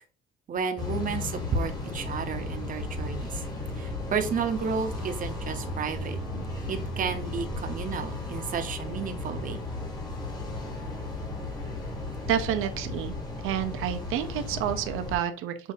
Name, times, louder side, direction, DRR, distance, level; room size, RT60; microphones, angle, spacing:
voice 1, 0.5-3.4 3.8-6.2 6.7-9.6, right 5 dB, 40° right, 6 dB, 0.7 m, -32 dB
sound 1, 0.8-15.2, left 2 dB, 20° left, 1.5 m, -35 dB
voice 2, 12.3-13.1 13.4-15.7, right 10 dB, 80° right, 8 dB, 0.7 m, -29 dB
6.5 x 2.7 x 2.6 m, 0.36 s
cardioid pair, 135°, 21 cm